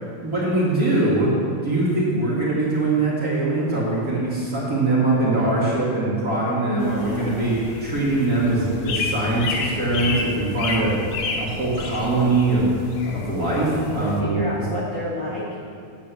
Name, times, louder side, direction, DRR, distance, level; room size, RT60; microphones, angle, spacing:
voice 1, 0.2-1.3 1.6-10.9 11.4-12.7 13.1-14.6, right 2 dB, 35° right, -7 dB, 2.1 m, -22 dB
voice 2, 6.5-7.5 14.0-15.6, left 1 dB, 50° left, -6 dB, 1.9 m, -29 dB
sound 1, 6.8-14.2, left 3 dB, 70° left, 2.2 m, -30 dB
9.1 x 7.5 x 7.0 m, 2.4 s
omnidirectional pair, 3.3 m